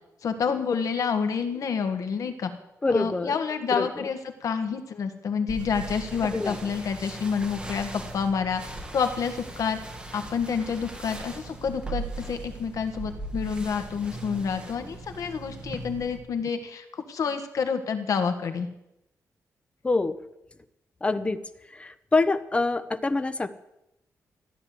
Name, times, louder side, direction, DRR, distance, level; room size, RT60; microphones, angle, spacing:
voice 1, 0.2-2.5 2.9-8.6 8.9-9.8 10.1-18.7, left 6 dB, 65° left, 7 dB, 1.8 m, -28 dB
voice 2, 2.8-3.4 3.7-4.1 6.3-6.6 19.8-20.2 21.0-21.4 21.7-23.5, left 3 dB, 20° left, 12 dB, 0.9 m, -25 dB
sound 1, 5.5-16.2, right 2 dB, 15° right, 2.2 m, -39 dB
15.0 x 10.0 x 7.8 m, 0.87 s
wide cardioid pair, 135°, 6 cm